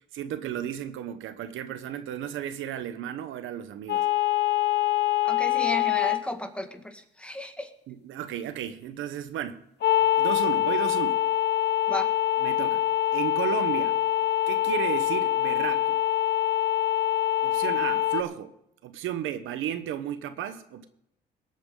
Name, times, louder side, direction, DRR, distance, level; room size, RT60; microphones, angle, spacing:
voice 1, 0.1-4.1 7.9-9.6 10.2-11.2 12.4-12.8 13.1-14.0 14.5-16.0 17.4-18.5 18.8-20.9, right 10 dB, 85° right, 1.0 m, -33 dB
sound 1, 3.9-6.2 9.8-18.2, left 12 dB, 60° left, 0.9 m, -24 dB
voice 2, 5.2-7.7 11.9-12.1, left 1 dB, 5° left, 1.7 m, -34 dB
20.0 x 8.7 x 3.8 m
cardioid pair, 90°, 20 cm